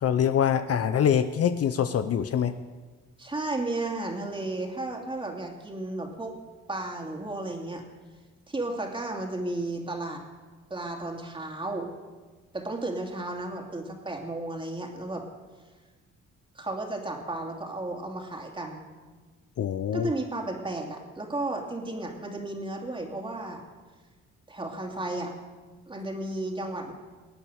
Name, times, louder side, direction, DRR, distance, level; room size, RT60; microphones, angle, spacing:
voice 1, 0.0-2.5 19.6-20.1, left 8 dB, 50° left, 10 dB, 0.7 m, -24 dB
voice 2, 3.2-6.4 6.7-7.8 8.5-10.2 10.7-11.9 12.5-15.2 16.5-18.9 19.9-23.6 24.5-25.3 25.9-26.9, right 2 dB, 15° right, 1 dB, 2.7 m, -33 dB
19.0 x 9.1 x 6.5 m, 1.4 s
cardioid pair, 90°, 30 cm